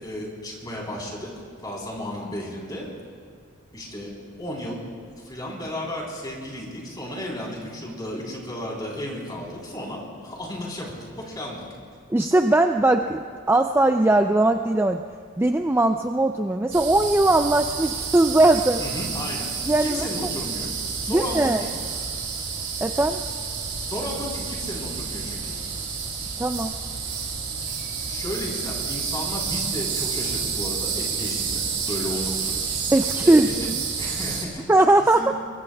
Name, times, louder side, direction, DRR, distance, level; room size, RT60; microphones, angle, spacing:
voice 1, 0.0-1.3 1.6-2.9 3.7-4.1 4.4-4.8 5.2-11.6 18.8-19.5 19.8-20.7 21.0-21.7 23.8-25.5 28.1-32.6 33.2-33.7 34.0-34.7 35.1-35.3, left 1 dB, 20° left, -3 dB, 3.7 m, -33 dB
voice 2, 12.1-15.0 15.4-18.8 19.7-20.1 21.1-21.6 22.8-23.2 26.4-26.8 32.9-33.8 34.7-35.3, right 2 dB, 10° right, 5 dB, 0.3 m, -20 dB
sound 1, 16.7-34.5, right 5 dB, 60° right, 2.8 m, -30 dB
24.0 x 22.0 x 2.3 m, 2.2 s
head